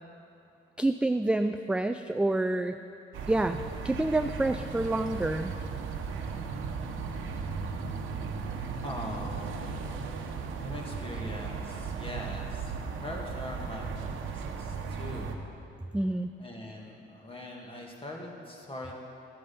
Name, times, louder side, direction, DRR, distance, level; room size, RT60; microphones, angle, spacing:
voice 1, 0.8-2.7 3.3-5.5 15.9-16.3, right 2 dB, 5° right, 9 dB, 0.3 m, -28 dB
sound 1, 3.1-15.4, right 5 dB, 85° right, 1.1 m, -36 dB
voice 2, 8.8-10.3 10.6-12.7 13.0-15.3 16.4-18.9, left 1 dB, 25° left, -1 dB, 2.3 m, -42 dB
14.0 x 9.2 x 5.5 m, 2.6 s
cardioid pair, 90°, 20 cm